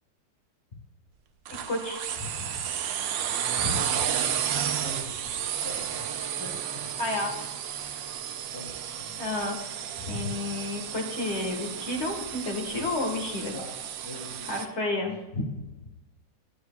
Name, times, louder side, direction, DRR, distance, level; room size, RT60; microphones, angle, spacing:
sound 1, 1.5-14.7, right 9 dB, 90° right, 1.4 m, -32 dB
voice 1, 1.7-2.5 3.6-3.8 7.0-7.4 9.2-9.6 10.1-13.5 14.4-15.4, left 2 dB, 40° left, 1 dB, 1.8 m, -31 dB
voice 2, 4.7-5.2 5.5-6.8 7.8-8.0 8.4-9.1 13.3-13.7 14.0-14.5 15.0-15.1, left 1 dB, 70° left, -6 dB, 4.1 m, -44 dB
12.5 x 8.4 x 2.3 m, 1.1 s
omnidirectional pair, 2.0 m